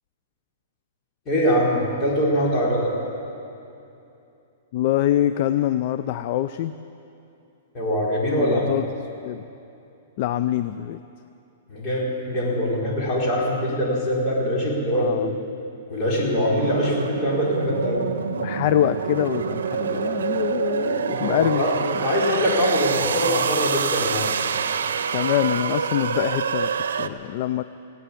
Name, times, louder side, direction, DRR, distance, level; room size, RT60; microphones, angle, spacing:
voice 1, 1.3-3.0 7.7-8.7 11.7-15.3 15.9-18.1 21.1-24.3 26.8-27.1, equal, 25° left, -5 dB, 4.3 m, -23 dB
voice 2, 4.7-6.7 8.4-8.8 9.2-9.4 10.2-11.0 14.9-15.3 18.3-22.0 25.1-26.7 27.0-27.6, left 12 dB, 45° left, 12 dB, 0.4 m, -24 dB
sound 1, 16.6-27.1, right 7 dB, 90° right, 0.7 m, -26 dB
18.5 x 9.1 x 8.5 m, 2.7 s
hypercardioid pair, 150°, 0 cm